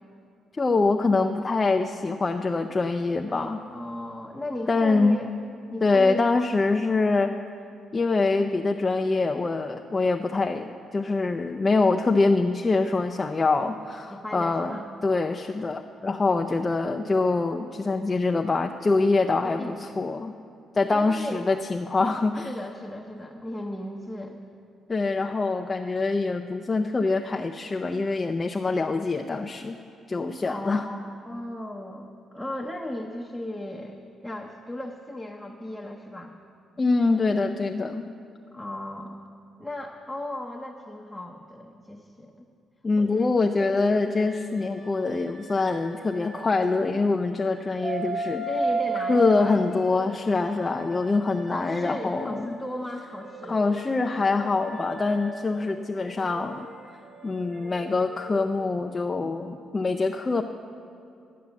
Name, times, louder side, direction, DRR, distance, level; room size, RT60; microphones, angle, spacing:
voice 1, 0.6-3.6 4.7-5.2 5.8-7.3 7.9-20.3 20.7-22.5 24.9-29.8 30.1-30.9 36.8-38.1 42.8-48.4 49.1-52.6 53.5-56.7 57.2-60.4, left 3 dB, 25° left, 4 dB, 0.5 m, -24 dB
voice 2, 3.3-5.3 5.7-6.3 11.6-11.8 12.7-12.8 14.1-14.9 19.4-20.0 20.9-21.5 22.5-24.4 30.5-31.0 31.3-36.3 38.5-39.2 39.6-42.5 43.0-43.3 43.6-43.7 48.5-49.5 51.4-53.6, left 1 dB, 5° left, 0 dB, 0.8 m, -36 dB
sound 1, 43.4-47.0 47.4-52.6 53.0-58.6, right 2 dB, 35° right, 3.6 m, -36 dB
12.0 x 8.5 x 7.0 m, 2.6 s
cardioid pair, 90°, 0 cm